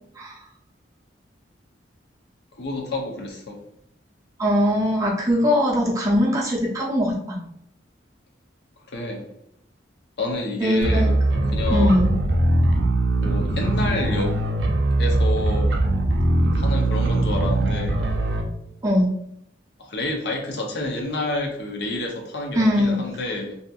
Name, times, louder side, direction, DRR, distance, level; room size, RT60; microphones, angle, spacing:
voice 1, 2.5-3.6 8.9-9.3 10.2-11.2 11.5-12.1 13.2-14.4 15.0-15.8 16.5-18.0 19.8-23.6, left 2 dB, 65° left, 2 dB, 0.6 m, -29 dB
voice 2, 4.4-7.4 10.6-11.1 11.4-12.1 18.8-19.1 22.5-23.0, equal, 20° right, -5 dB, 0.6 m, -21 dB
sound 1, 10.8-18.4, right 2 dB, 70° right, 0.4 m, -21 dB
2.7 x 2.6 x 2.3 m, 0.73 s
head